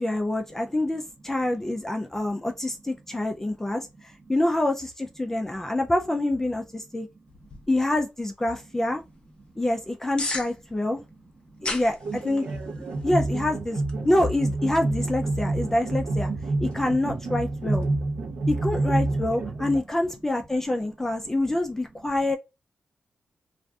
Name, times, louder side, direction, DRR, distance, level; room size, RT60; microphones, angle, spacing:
voice 1, 0.0-7.1 7.7-9.0 9.6-11.0 11.6-12.5 13.0-16.3 16.6-17.8 18.5-22.4, left 1 dB, 10° left, 0.3 m, -26 dB
voice 2, 2.1-4.3 5.2-5.8 6.8-7.7 9.4-9.5 10.9-11.8 12.3-13.1 16.3-17.0 17.8-18.5 19.1-19.7 20.9-21.9, right 4 dB, 40° right, 0.8 m, -51 dB
sound 1, 7.3-17.8, left 2 dB, 35° left, 0.7 m, -41 dB
sound 2, 12.0-19.8, right 2 dB, 85° right, 0.7 m, -28 dB
2.4 x 2.3 x 3.3 m
wide cardioid pair, 145°, 3 cm